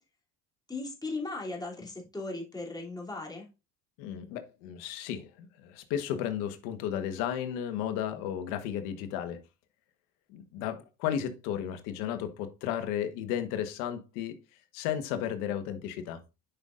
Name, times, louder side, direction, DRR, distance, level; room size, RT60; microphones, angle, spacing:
voice 1, 0.7-3.5, left 3 dB, 10° left, 2.8 m, -37 dB
voice 2, 4.0-9.4 10.3-14.4 14.7-16.2, left 10 dB, 85° left, 1.3 m, -34 dB
10.0 x 5.7 x 2.5 m
supercardioid pair, 95°, 34 cm